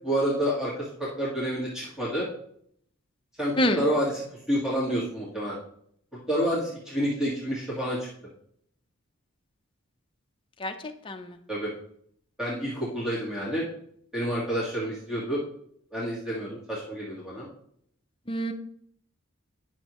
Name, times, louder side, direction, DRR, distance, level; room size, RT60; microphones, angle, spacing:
voice 1, 0.0-2.3 3.4-5.6 6.3-8.1 11.5-11.7 12.4-13.6 14.1-15.4 15.9-17.5, equal, 5° right, -8 dB, 1.7 m, -29 dB
voice 2, 11.0-11.4 18.3-18.5, equal, 25° left, 4 dB, 0.6 m, -26 dB
10.0 x 6.2 x 3.0 m, 0.67 s
head